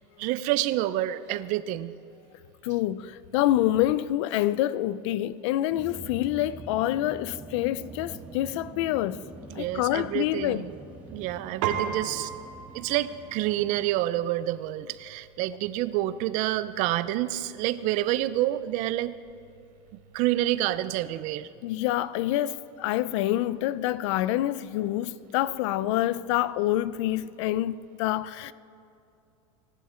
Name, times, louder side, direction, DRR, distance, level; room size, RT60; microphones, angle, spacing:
voice 1, 0.2-1.9 9.5-10.7 11.1-12.3 12.7-19.2 20.1-21.5, right 14 dB, 55° right, 0.7 m, -28 dB
voice 2, 2.6-9.2 9.6-10.6 21.6-28.5, left 14 dB, 70° left, 0.6 m, -27 dB
sound 1, 5.7-13.9, right 2 dB, 10° right, 1.6 m, -45 dB
Piano, 11.6-21.2, right 8 dB, 85° right, 2.1 m, -40 dB
24.5 x 11.5 x 4.4 m
supercardioid pair, 130°, 16 cm